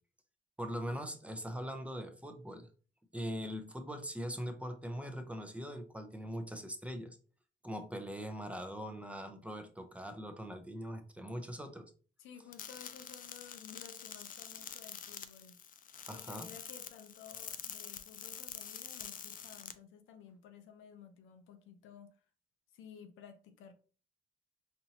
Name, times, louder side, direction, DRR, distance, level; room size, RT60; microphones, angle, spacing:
voice 1, 0.6-2.7 3.1-7.2 7.6-11.9 16.1-16.5, equal, 5° right, 0.6 m, -41 dB
voice 2, 12.2-15.6 16.1-22.2 22.7-23.7, left 7 dB, 85° left, 0.6 m, -54 dB
sound 1, 12.5-19.7, left 8 dB, 45° left, 0.4 m, -46 dB
4.3 x 2.7 x 2.8 m
cardioid pair, 90°, 20 cm